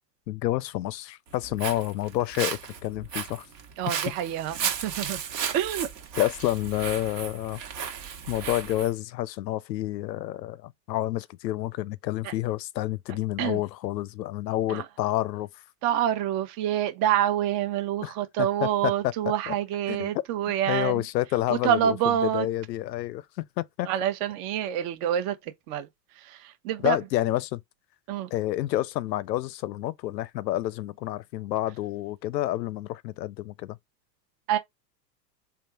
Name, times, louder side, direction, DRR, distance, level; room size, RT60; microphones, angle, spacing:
voice 1, 0.3-3.5 6.2-7.6 8.3-15.5 18.0-18.1 18.6-18.9 19.9-20.1 20.7-21.9 22.3-23.9 26.8-27.6 28.3-33.8, left 15 dB, 80° left, 0.6 m, -29 dB
Walk footsteps, 1.3-8.9, right 7 dB, 70° right, 1.4 m, -35 dB
voice 2, 3.8-5.2 5.5-5.9 12.2-12.3 13.4-13.6 14.7-14.9 15.8-21.1 21.5-22.5 23.8-27.0 28.1-28.3 34.5-34.6, right 10 dB, 45° right, 0.9 m, -27 dB
3.5 x 2.4 x 4.5 m
hypercardioid pair, 100°, 49 cm